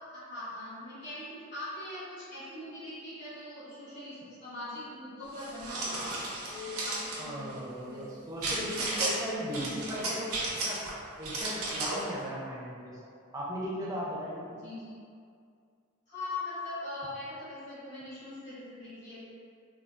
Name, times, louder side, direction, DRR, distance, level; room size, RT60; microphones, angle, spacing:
voice 1, 0.1-8.0 14.6-14.9 16.1-19.2, left 2 dB, 50° left, -12 dB, 1.5 m, -41 dB
sound 1, 5.3-7.2 8.4-9.1 9.5-10.9 11.2-12.1, right 2 dB, 85° right, 0.7 m, -34 dB
voice 2, 7.2-10.3 10.6-10.8 11.2-13.1 13.3-14.5, equal, 15° right, -6 dB, 0.4 m, -37 dB
3.4 x 2.3 x 2.5 m, 2.3 s
head